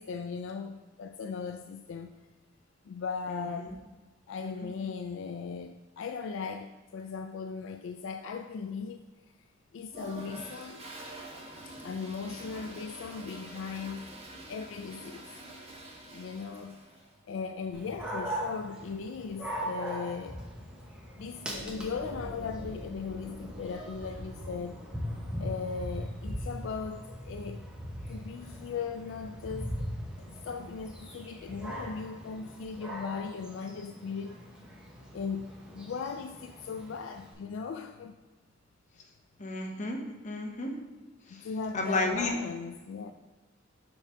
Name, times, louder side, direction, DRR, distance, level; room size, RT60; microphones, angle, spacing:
voice 1, 0.0-2.1 2.8-3.8 4.3-9.1 9.7-10.9 11.7-14.1 14.5-15.3 16.1-16.8 17.3-20.4 21.2-24.8 25.4-27.6 28.1-29.9 30.2-34.4 35.1-38.2 41.3-43.1, left 5 dB, 70° left, 0.3 m, -38 dB
voice 2, 3.3-3.7 4.4-4.7 39.4-40.0 40.2-40.7 41.7-42.3, left 2 dB, 35° left, 0.8 m, -32 dB
Toilet flush, 9.9-17.1, right 2 dB, 30° right, 1.0 m, -46 dB
Dog, 17.7-37.3, equal, 5° right, 0.9 m, -40 dB
sound 1, 21.5-28.9, equal, 75° right, 1.2 m, -50 dB
7.0 x 4.9 x 3.4 m
head